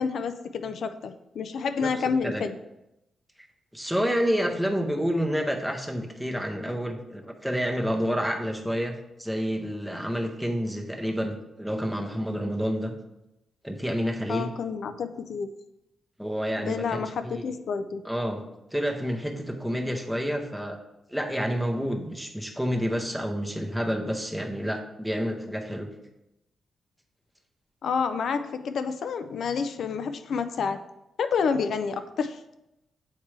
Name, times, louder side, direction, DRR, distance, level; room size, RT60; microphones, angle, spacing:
voice 1, 0.0-2.6 14.3-15.5 16.6-18.0 27.8-30.8 31.2-32.4, left 5 dB, 65° left, 10 dB, 0.3 m, -29 dB
voice 2, 3.7-12.9 13.6-14.5 16.2-17.5 18.0-18.4 18.7-20.8 21.1-25.9, equal, ahead, 2 dB, 0.6 m, -29 dB
7.3 x 4.5 x 3.2 m, 0.89 s
wide cardioid pair, 155°, 0 cm